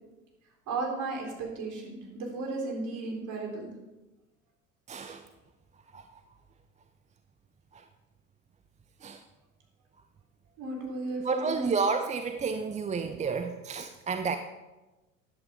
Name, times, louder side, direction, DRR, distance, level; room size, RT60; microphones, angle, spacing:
voice 1, 0.7-3.7 10.6-11.7, right 3 dB, 45° right, 0 dB, 4.2 m, -35 dB
voice 2, 4.9-5.3 5.9-6.2 7.7-7.9 9.0-9.2 11.2-14.4, right 5 dB, 15° right, 8 dB, 0.6 m, -31 dB
13.5 x 10.5 x 3.8 m, 1.1 s
figure-of-eight pair, 70°, 41 cm